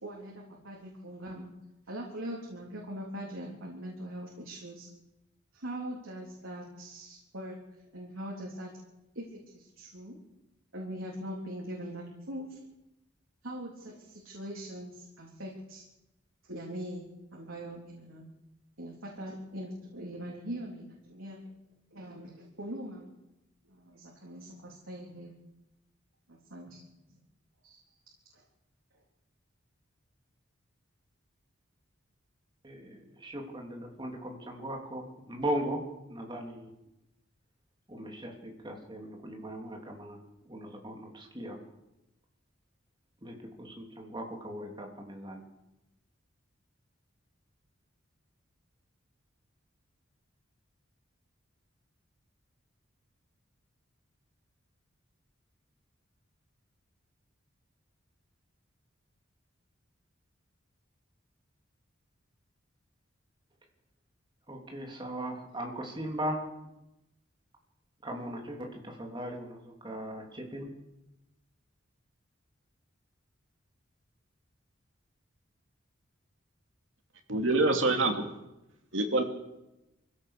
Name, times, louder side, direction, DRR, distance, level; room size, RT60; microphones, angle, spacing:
voice 1, 0.0-1.5 1.9-4.9 5.5-7.6 7.9-8.7 9.1-9.3 9.5-10.2 10.7-12.6 13.4-15.8 16.4-18.2 18.8-21.5 21.9-23.1 23.7-25.4 26.3-27.2 27.6-27.8 28.3-28.4, right 1 dB, 85° right, -2 dB, 3.8 m, -42 dB
voice 2, 32.6-35.8 36.1-36.7 37.9-40.2 40.5-41.6 43.2-45.4 64.5-66.4 68.0-70.7, right 1 dB, 25° right, 1 dB, 3.6 m, -38 dB
voice 3, 77.3-78.2 78.9-79.2, right 2 dB, 70° right, 3 dB, 2.9 m, -25 dB
24.0 x 16.5 x 6.9 m, 0.95 s
head